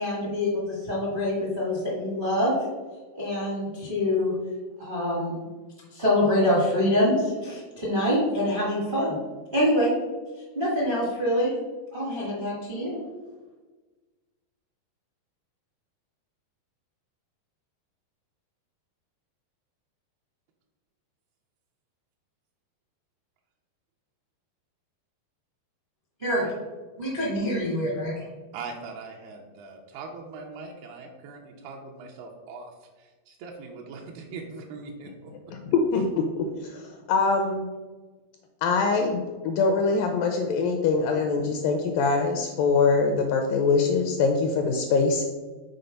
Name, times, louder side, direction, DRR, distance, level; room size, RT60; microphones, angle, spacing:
voice 1, 0.0-2.6 3.1-4.3 4.8-5.4 5.9-9.1 9.5-9.9 10.5-11.5 11.9-13.0 26.2-26.4 27.0-28.3, left 1 dB, 50° right, -6 dB, 0.6 m, -25 dB
voice 2, 28.5-35.3, right 4 dB, 80° right, 0 dB, 2.7 m, -41 dB
voice 3, 35.5-37.7 38.6-45.3, left 4 dB, 85° left, 3 dB, 2.0 m, -24 dB
6.8 x 4.2 x 5.2 m, 1.3 s
omnidirectional pair, 4.5 m